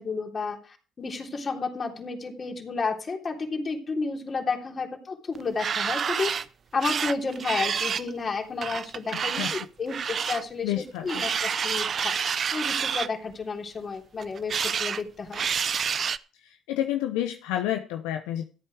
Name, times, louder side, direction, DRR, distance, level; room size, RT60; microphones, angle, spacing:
voice 1, 0.0-6.4 6.7-10.7 11.0-15.4, left 4 dB, 40° left, 2 dB, 3.4 m, -31 dB
sound 1, 5.4-6.5 6.8-8.1 8.6-10.4 11.1-13.1 14.2-15.0 15.3-16.2, right 7 dB, 50° right, 0.6 m, -28 dB
voice 2, 9.1-9.5 10.6-11.2 16.4-18.4, left 12 dB, 80° left, 6 dB, 0.8 m, -30 dB
14.0 x 8.7 x 4.9 m, 0.37 s
hypercardioid pair, 55°, 0 cm